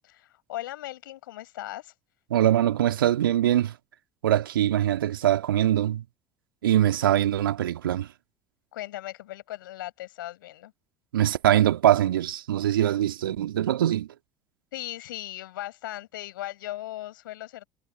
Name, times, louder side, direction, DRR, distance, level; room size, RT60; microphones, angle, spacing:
voice 1, 0.0-1.9 8.7-10.7 14.7-17.7, left 15 dB, 75° left, 6.6 m, -38 dB
voice 2, 2.3-3.7 4.2-6.0 6.6-8.1 11.1-14.1, right 12 dB, 75° right, 1.8 m, -23 dB
figure-of-eight pair, 65°, 11 cm